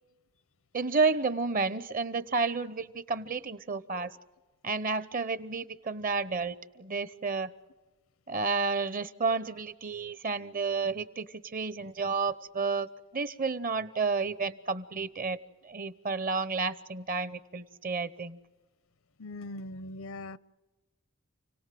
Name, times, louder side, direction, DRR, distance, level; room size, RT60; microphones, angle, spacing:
voice 1, 0.7-4.2 4.6-7.5 8.3-15.4 15.6-18.4, right 4 dB, 45° right, 0.9 m, -31 dB
voice 2, 19.2-20.4, left 2 dB, 80° left, 0.7 m, -40 dB
29.0 x 18.5 x 7.7 m
head